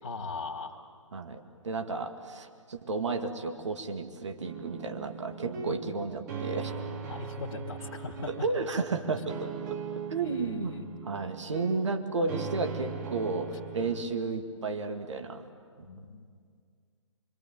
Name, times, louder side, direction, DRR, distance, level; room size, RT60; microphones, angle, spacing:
voice 1, 0.0-0.8 5.7-5.8 7.1-8.3 10.2-10.9 15.8-16.2, left 4 dB, 45° left, -2 dB, 2.3 m, -39 dB
voice 2, 1.1-6.7 8.3-9.8 10.1-10.8 11.0-15.5, right 3 dB, 60° right, 5 dB, 2.1 m, -33 dB
sound 1, 4.4-14.0, right 5 dB, 35° right, 1.8 m, -40 dB
26.0 x 25.0 x 9.0 m, 2.1 s
figure-of-eight pair, 130°, 17 cm